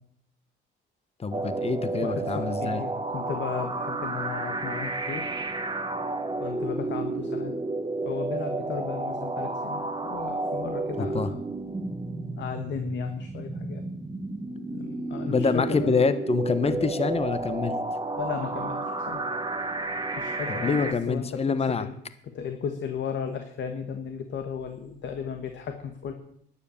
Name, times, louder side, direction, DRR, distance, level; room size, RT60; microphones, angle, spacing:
voice 1, 1.2-2.8 11.0-11.3 15.3-17.8 20.5-21.9, left 5 dB, 30° left, 12 dB, 1.1 m, -26 dB
sound 1, 1.3-20.9, right 2 dB, 20° right, 1.5 m, -31 dB
voice 2, 2.0-5.3 6.4-7.5 8.1-11.4 12.4-13.8 14.7-16.0 16.6-16.7 18.2-18.8 19.1-19.2 20.2-21.9 22.2-26.1, left 7 dB, 65° left, 6 dB, 1.5 m, -35 dB
12.5 x 9.8 x 7.1 m, 0.70 s
cardioid pair, 90°, 20 cm